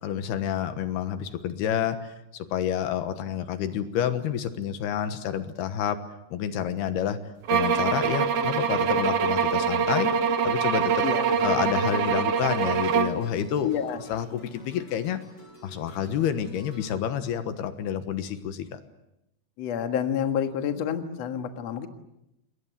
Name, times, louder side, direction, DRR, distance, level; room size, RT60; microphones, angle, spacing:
voice 1, 0.0-6.0 6.3-7.2 7.5-10.1 10.4-11.0 11.4-13.7 14.1-15.2 15.6-18.8, left 9 dB, 75° left, 10 dB, 3.3 m, -29 dB
sound 1, 7.5-13.2, right 6 dB, 75° right, 1.4 m, -24 dB
sound 2, 10.7-16.9, equal, 25° left, 8.0 m, -50 dB
voice 2, 13.6-14.0 19.6-21.9, left 9 dB, 55° left, 7 dB, 2.2 m, -28 dB
28.5 x 21.5 x 8.2 m, 0.86 s
omnidirectional pair, 4.7 m